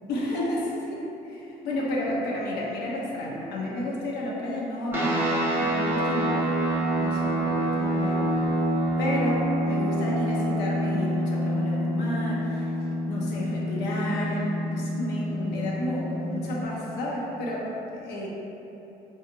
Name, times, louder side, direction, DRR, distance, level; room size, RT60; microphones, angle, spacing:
voice 1, 0.1-6.5 7.0-8.4 9.0-12.7 13.1-18.3, left 1 dB, 75° left, -4 dB, 0.7 m, -31 dB
sound 1, 4.9-16.7, right 1 dB, 10° right, 0.6 m, -27 dB
3.7 x 2.4 x 2.9 m, 3.0 s
cardioid pair, 110°, 17 cm